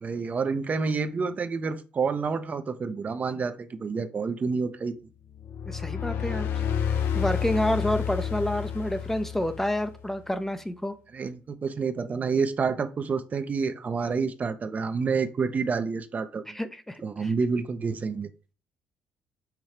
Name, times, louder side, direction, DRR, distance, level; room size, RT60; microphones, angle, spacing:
voice 1, 0.0-5.0 11.1-16.6 17.0-18.3, right 5 dB, 40° right, 0.5 m, -28 dB
sound 1, 5.3-10.0, left 8 dB, 65° left, 0.5 m, -30 dB
voice 2, 5.7-6.5 6.9-11.0 16.5-17.3, left 1 dB, 10° left, 0.5 m, -29 dB
5.8 x 2.3 x 3.2 m
supercardioid pair, 70°, 4 cm